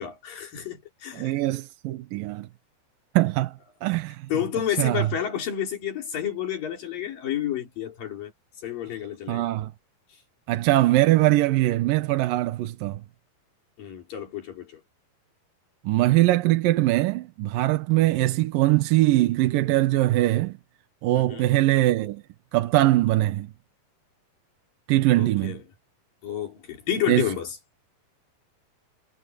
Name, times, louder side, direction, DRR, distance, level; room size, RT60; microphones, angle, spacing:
voice 1, 0.0-1.4 4.3-8.3 8.6-9.5 13.8-14.8 18.0-18.1 21.2-21.5 25.1-25.6 26.2-27.6, left 9 dB, 80° left, 5.3 m, -30 dB
voice 2, 1.1-2.5 3.2-3.5 3.8-4.2 4.8-5.1 9.3-9.7 10.5-13.0 15.9-20.5 21.0-22.2 22.5-23.5 24.9-25.6 27.1-27.3, right 16 dB, 85° right, 2.7 m, -22 dB
omnidirectional pair, 3.9 m